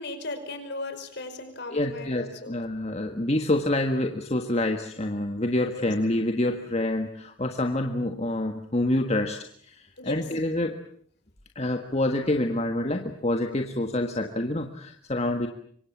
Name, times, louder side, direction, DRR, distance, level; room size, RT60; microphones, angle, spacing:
voice 1, 0.0-2.5 5.7-5.9 10.0-10.2, left 2 dB, 55° left, 8 dB, 5.1 m, -36 dB
voice 2, 1.7-10.8 11.6-15.5, left 1 dB, 30° left, 4 dB, 1.6 m, -27 dB
27.0 x 24.0 x 7.4 m, 0.64 s
head